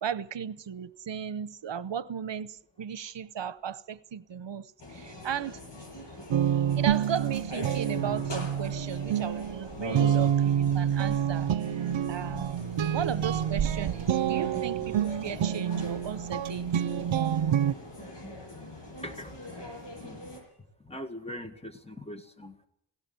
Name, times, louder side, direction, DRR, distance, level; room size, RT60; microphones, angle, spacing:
voice 1, 0.0-5.6 6.7-11.5 12.1-12.5 12.9-17.3, right 8 dB, 65° right, 0.9 m, -36 dB
sound 1, 4.8-20.4, left 1 dB, 60° left, 7.8 m, -42 dB
sound 2, 6.3-17.7, right 9 dB, 90° right, 0.7 m, -28 dB
voice 2, 19.0-19.4 20.0-20.2 20.8-22.7, left 1 dB, 15° left, 1.9 m, -42 dB
17.5 x 16.5 x 9.3 m
wide cardioid pair, 80°, 46 cm